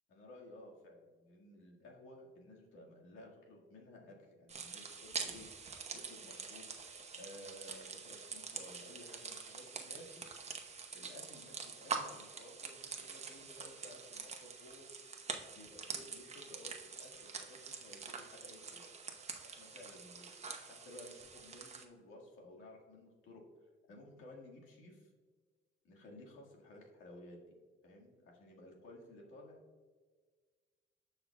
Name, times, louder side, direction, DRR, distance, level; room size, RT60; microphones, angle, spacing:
voice 1, 0.1-5.5 5.9-6.7 7.2-10.3 10.9-14.9 15.3-18.9 19.4-23.4 23.9-25.1 25.8-27.6 27.8-29.6, left 1 dB, 85° left, -1 dB, 1.8 m, -55 dB
sound 1, 4.5-21.9, right 5 dB, 35° right, 0.9 m, -45 dB
15.0 x 5.6 x 2.3 m, 1.5 s
cardioid pair, 90°, 20 cm